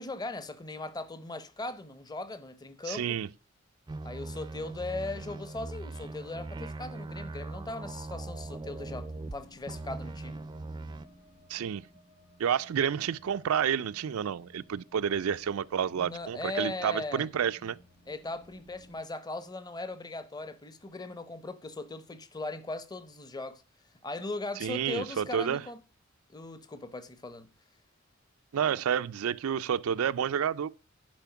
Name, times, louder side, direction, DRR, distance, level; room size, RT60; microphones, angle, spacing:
voice 1, 0.0-3.2 4.0-10.4 16.0-17.3 18.1-23.6 24.0-25.8 26.3-27.5, left 2 dB, 20° left, 0.8 m, -39 dB
voice 2, 2.9-3.3 11.5-11.8 12.4-17.8 24.6-25.6 28.5-30.7, right 8 dB, 85° right, 0.4 m, -30 dB
sound 1, 3.9-9.4 9.7-11.0, right 2 dB, 20° right, 0.4 m, -40 dB
sound 2, 7.8-19.0, equal, 70° left, 3.2 m, -58 dB
10.5 x 5.0 x 5.7 m
head